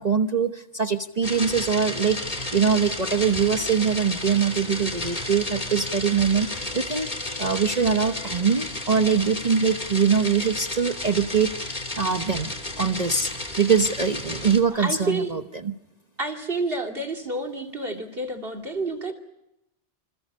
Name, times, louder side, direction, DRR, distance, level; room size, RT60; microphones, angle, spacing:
voice 1, 0.0-12.5 12.8-13.3 13.6-15.7, right 6 dB, 40° right, 7 dB, 1.1 m, -23 dB
sound 1, 1.2-14.6, left 1 dB, 40° left, 3.1 m, -32 dB
Wind instrument woodwind instrument, 3.0-8.5, left 7 dB, 85° left, 7.1 m, -49 dB
voice 2, 14.8-15.3 16.2-19.1, right 2 dB, 55° right, 8 dB, 2.8 m, -29 dB
28.5 x 26.5 x 5.6 m, 0.84 s
omnidirectional pair, 1.2 m